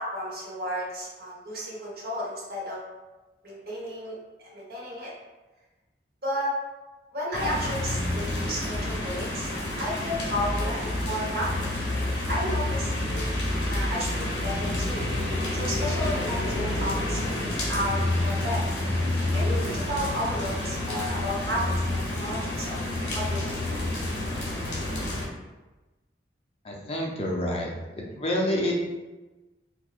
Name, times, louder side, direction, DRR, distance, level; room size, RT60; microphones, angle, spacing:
voice 1, 0.0-2.8 3.4-4.1 4.5-5.1 6.2-6.5 7.1-9.5 9.8-11.7 12.3-13.3 13.7-15.1 15.5-18.6 19.3-22.8 23.1-23.6, equal, 60° right, -5 dB, 1.1 m, -32 dB
sound 1, 7.3-25.3, left 1 dB, 80° left, 0.9 m, -29 dB
voice 2, 26.6-27.7 28.0-28.7, left 1 dB, 35° left, -1 dB, 0.5 m, -28 dB
4.3 x 2.3 x 2.4 m, 1.1 s
head